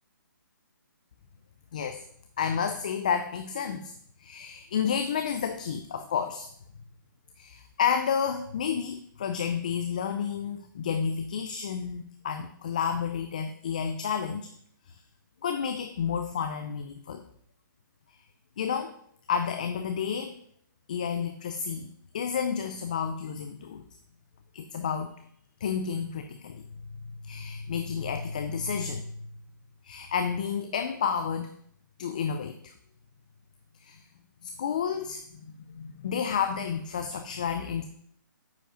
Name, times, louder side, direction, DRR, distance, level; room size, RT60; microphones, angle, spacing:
voice 1, 1.7-2.1 2.4-3.9 4.2-6.5 7.4-14.5 14.9-15.0 15.4-17.2 18.6-18.9 19.3-20.3 20.9-23.9 24.5-25.1 25.6-26.6 27.2-29.3 29.8-31.5 32.0-32.7 33.8-34.0 34.4-35.2 35.7-37.9, left 7 dB, 20° left, 8 dB, 0.4 m, -31 dB
9.1 x 5.2 x 5.1 m, 0.66 s
hypercardioid pair, 170°, 11 cm